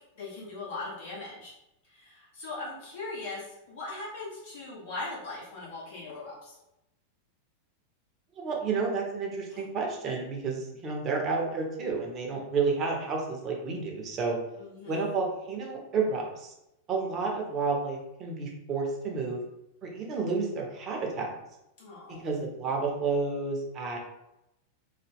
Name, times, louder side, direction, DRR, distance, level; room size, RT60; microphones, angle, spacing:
voice 1, 0.1-1.5 1.9-6.6 9.5-9.6 14.5-15.0 21.8-22.3, left 3 dB, 55° left, -6 dB, 1.4 m, -40 dB
voice 2, 8.4-14.4 14.9-16.5 16.9-19.4 19.8-21.3 22.1-24.0, right 4 dB, 30° right, 0 dB, 0.8 m, -30 dB
2.9 x 2.2 x 3.5 m, 0.88 s
figure-of-eight pair, 90°, 0 cm